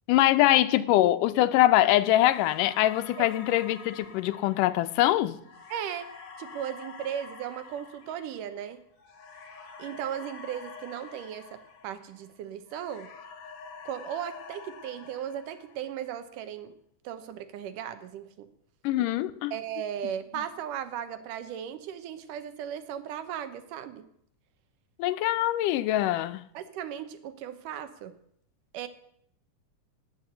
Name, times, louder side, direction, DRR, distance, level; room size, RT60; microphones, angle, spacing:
voice 1, 0.1-5.4 18.8-19.5 25.0-26.4, left 14 dB, 85° left, 2.3 m, -23 dB
sound 1, 2.2-12.4 12.7-16.1, left 5 dB, 50° left, 2.3 m, -47 dB
voice 2, 5.7-6.1 6.4-8.8 9.8-13.1 13.9-16.7 17.0-18.5 19.5-24.0 26.5-28.1 28.7-28.9, right 9 dB, 85° right, 2.6 m, -36 dB
19.0 x 6.3 x 8.0 m
omnidirectional pair, 3.7 m